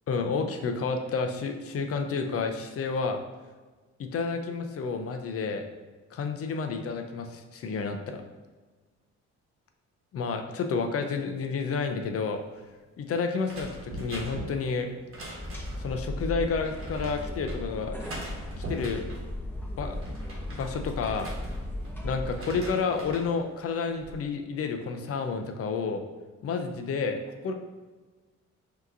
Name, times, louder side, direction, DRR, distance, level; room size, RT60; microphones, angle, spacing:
voice 1, 0.1-3.2 4.0-5.6 6.1-8.2 10.1-12.4 13.0-14.9 15.8-18.0 18.6-19.0 19.8-20.2 20.5-21.3 22.0-26.0 26.4-27.5, left 5 dB, 50° left, 5 dB, 0.5 m, -30 dB
sound 1, 13.4-15.9 16.6-17.6 18.0-19.2 19.7-21.9 22.2-23.3 23.8-24.2, right 1 dB, 45° right, 1.2 m, -41 dB
sound 2, 15.3-22.4, left 1 dB, 5° left, 1.2 m, -36 dB
5.7 x 2.9 x 2.6 m, 1.3 s
cardioid pair, 90°, 30 cm